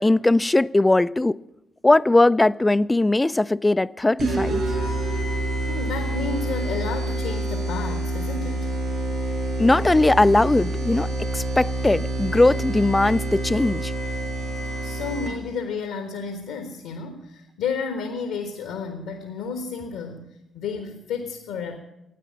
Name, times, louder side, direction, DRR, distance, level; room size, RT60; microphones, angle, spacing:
voice 1, 0.0-1.4 1.8-4.6 9.6-13.9, left 2 dB, 20° left, 0.4 m, -19 dB
sound 1, 4.2-15.6, right 1 dB, 65° right, 7.8 m, -27 dB
voice 2, 5.7-8.7 14.8-20.3 20.5-21.8, left 5 dB, 80° left, 1.3 m, -31 dB
13.5 x 9.2 x 8.6 m
hypercardioid pair, 50°, 0 cm